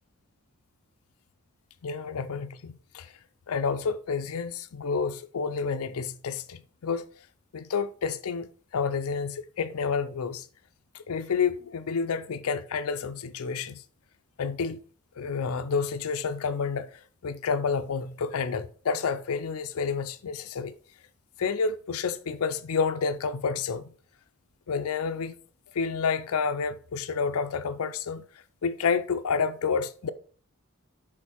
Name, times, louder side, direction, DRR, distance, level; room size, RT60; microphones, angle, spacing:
voice 1, 1.8-3.1 3.5-7.0 7.5-8.5 8.7-10.5 10.9-13.8 14.4-14.8 15.2-20.7 21.4-23.9 24.7-25.4 25.7-28.2 28.6-30.1, left 5 dB, 80° left, 0.5 m, -29 dB
6.1 x 3.8 x 4.5 m
head